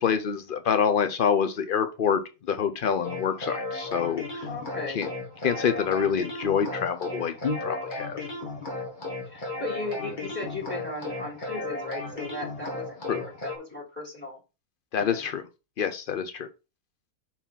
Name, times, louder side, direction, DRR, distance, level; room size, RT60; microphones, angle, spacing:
voice 1, 0.0-2.2 2.5-4.5 4.9-5.1 5.4-8.2 13.1-13.2 14.9-15.4 15.8-16.5, left 7 dB, 75° left, 8 dB, 0.4 m, -26 dB
sound 1, 3.0-13.5, left 2 dB, 30° left, 2.0 m, -35 dB
voice 2, 4.5-5.0 9.2-14.4 15.0-15.2, left 2 dB, 5° left, -3 dB, 3.4 m, -36 dB
5.8 x 4.5 x 5.4 m, 0.29 s
omnidirectional pair, 1.7 m